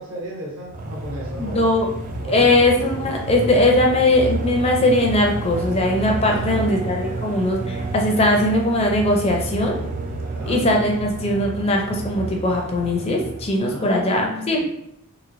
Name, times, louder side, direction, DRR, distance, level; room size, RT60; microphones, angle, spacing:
voice 1, 0.0-1.7 2.2-2.6 6.2-6.7 10.2-10.6 13.6-14.7, equal, 65° right, -4 dB, 0.8 m, -34 dB
sound 1, 0.7-13.8, right 2 dB, 35° right, 0.3 m, -30 dB
voice 2, 1.4-1.9 2.3-9.8 10.5-14.7, left 1 dB, 25° left, 1 dB, 0.4 m, -20 dB
3.0 x 2.9 x 2.5 m, 0.77 s
head